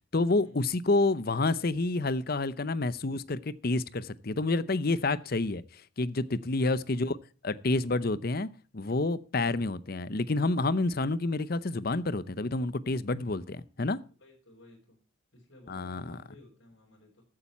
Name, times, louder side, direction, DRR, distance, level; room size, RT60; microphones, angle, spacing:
voice 1, 0.1-7.2 7.4-8.5 8.7-14.0 15.7-16.2, left 2 dB, 45° left, 17 dB, 0.7 m, -29 dB
voice 2, 6.2-6.7 13.6-13.7 14.2-15.0 15.3-17.2, left 1 dB, 75° left, -3 dB, 4.7 m, -55 dB
14.5 x 8.8 x 4.3 m, 0.37 s
head